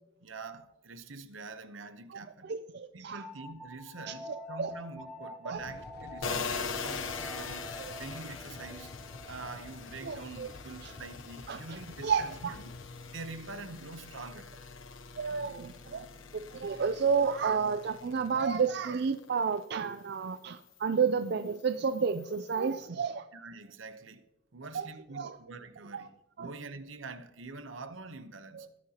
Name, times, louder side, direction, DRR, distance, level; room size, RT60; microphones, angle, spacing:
voice 1, 0.2-2.5 2.9-7.7 8.0-8.9 9.3-12.4 12.6-12.8 13.1-14.5 23.3-24.2 24.5-28.8, right 3 dB, 75° right, 0.9 m, -45 dB
voice 2, 2.1-3.2 4.1-4.7 5.4-5.6 7.8-8.0 10.0-10.5 10.8-10.9 11.5-11.6 12.0-12.6 15.2-16.1 16.3-23.2 24.7-24.9 25.1-25.4 25.9-26.0 26.4-26.5 28.5-28.7, right 6 dB, 55° right, 0.4 m, -31 dB
sound 1, 3.1-12.5, left 1 dB, ahead, 1.1 m, -48 dB
sound 2, 5.5-12.9, left 3 dB, 55° left, 0.6 m, -50 dB
sound 3, 6.2-19.6 20.0-22.9, left 5 dB, 80° left, 0.9 m, -43 dB
19.5 x 9.7 x 2.9 m
head